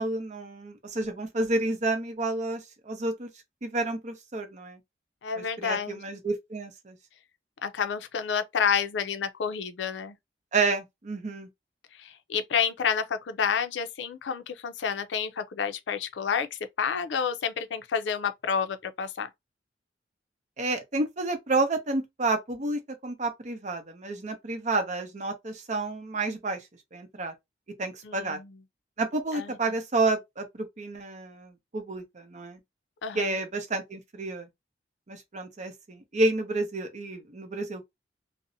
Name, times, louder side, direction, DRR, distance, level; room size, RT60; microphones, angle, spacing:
voice 1, 0.0-3.3 3.6-4.8 5.4-7.0 10.5-11.5 20.6-26.6 26.9-27.3 27.8-28.4 29.0-32.6 33.1-34.5 35.1-37.8, right 2 dB, 40° right, 0.7 m, -30 dB
voice 2, 5.2-6.0 7.6-10.1 11.9-16.5 16.8-19.3 28.0-28.5 29.3-29.6 33.0-33.4, left 7 dB, 85° left, 0.4 m, -29 dB
2.6 x 2.0 x 2.6 m
head